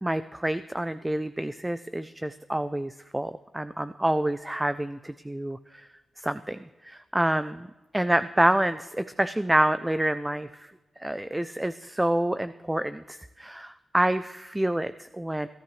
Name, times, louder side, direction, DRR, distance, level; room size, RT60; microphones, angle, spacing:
voice 1, 0.0-5.9 6.2-15.5, right 1 dB, 10° right, 12 dB, 0.4 m, -28 dB
22.5 x 13.5 x 3.2 m, 1.1 s
wide cardioid pair, 100°, 0 cm